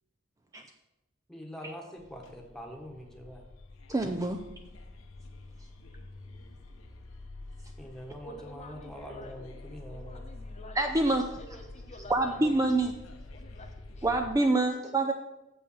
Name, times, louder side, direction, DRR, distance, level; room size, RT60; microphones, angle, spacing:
voice 1, 1.3-3.4 7.8-10.2, equal, ahead, 1 dB, 1.3 m, -44 dB
sound 1, 2.0-14.3, left 2 dB, 80° left, 0.9 m, -48 dB
voice 2, 3.9-4.4 10.8-11.2 12.1-12.9 14.0-15.1, right 2 dB, 15° right, 4 dB, 0.4 m, -26 dB
voice 3, 8.2-9.5 9.9-12.7 13.3-14.2, left 1 dB, 35° left, 4 dB, 0.9 m, -49 dB
7.3 x 5.5 x 7.1 m, 0.96 s
head